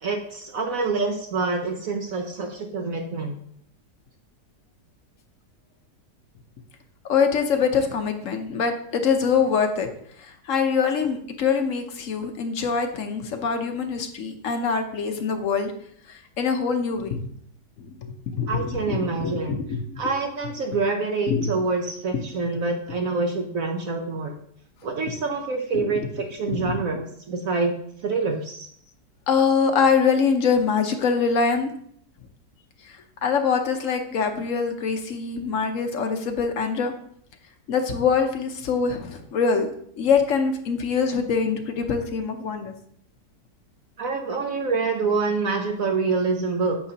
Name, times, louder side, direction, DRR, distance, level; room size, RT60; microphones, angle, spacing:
voice 1, 0.0-3.3 18.5-19.6 20.0-24.3 24.8-27.7 28.0-28.7 44.0-46.8, right 4 dB, 60° right, 3 dB, 1.1 m, -26 dB
voice 2, 7.0-9.9 10.2-15.7 16.1-17.2 17.8-20.0 21.3-21.5 22.1-22.2 25.7-26.0 26.5-26.8 29.3-31.7 32.8-32.9 33.2-36.9 37.7-39.7 40.0-42.7, left 5 dB, 55° left, 5 dB, 1.1 m, -24 dB
8.8 x 7.0 x 2.9 m, 0.66 s
omnidirectional pair, 1.8 m